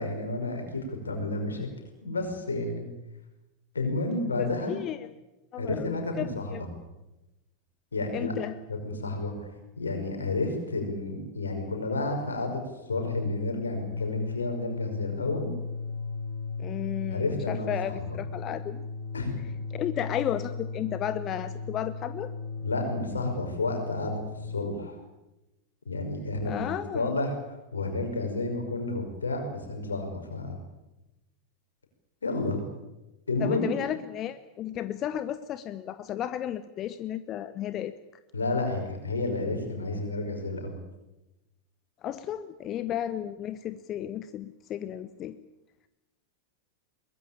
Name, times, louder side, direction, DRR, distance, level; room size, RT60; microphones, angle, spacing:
voice 1, 0.0-1.7 2.0-2.9 3.7-4.8 5.6-6.7 7.9-8.3 8.7-9.5 9.8-12.6 12.9-15.5 17.1-18.2 19.1-19.4 22.6-25.0 25.9-27.3 27.7-30.6 32.2-32.6 33.3-33.9 38.3-40.8, left 2 dB, 75° left, 4 dB, 5.5 m, -31 dB
voice 2, 4.4-5.1 5.5-6.6 8.1-8.6 16.6-18.8 19.7-22.3 26.4-27.1 33.4-37.9 42.0-45.4, left 11 dB, 30° left, 13 dB, 0.9 m, -33 dB
sound 1, 12.8-24.7, left 4 dB, 50° left, 2.1 m, -36 dB
23.0 x 20.5 x 8.8 m, 0.99 s
figure-of-eight pair, 90°, 0 cm